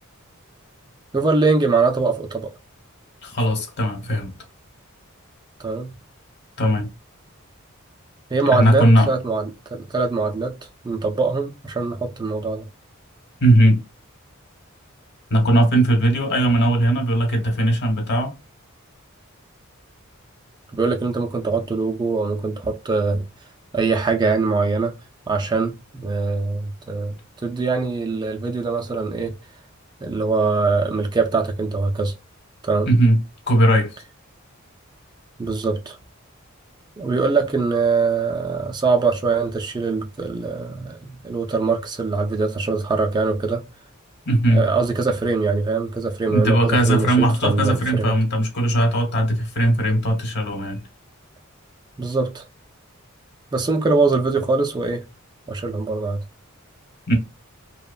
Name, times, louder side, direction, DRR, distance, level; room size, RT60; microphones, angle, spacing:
voice 1, 1.1-2.5 5.6-5.9 8.3-10.6 10.8-12.7 20.7-23.3 23.7-25.0 25.3-29.3 30.0-32.2 32.6-32.9 35.4-36.0 37.0-43.6 44.5-48.1 52.0-52.4 53.5-55.0 55.5-56.2, right 4 dB, 20° right, 0.3 m, -22 dB
voice 2, 3.2-4.3 6.6-6.9 8.5-9.1 13.4-13.8 15.3-18.3 32.9-33.2 33.5-34.0 44.3-44.6 46.3-50.8 57.1-57.2, right 1 dB, 55° left, 1.0 m, -18 dB
2.8 x 2.1 x 2.3 m
head